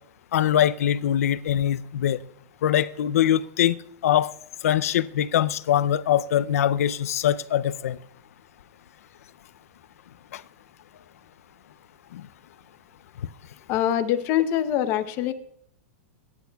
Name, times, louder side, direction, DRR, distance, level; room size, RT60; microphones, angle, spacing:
voice 1, 0.3-2.2 2.6-3.7 4.0-4.3 4.6-8.0 10.3-10.4, left 11 dB, 80° left, 0.5 m, -22 dB
voice 2, 13.7-15.3, left 11 dB, 30° left, 0.7 m, -24 dB
22.5 x 10.0 x 2.3 m
supercardioid pair, 160°, 8 cm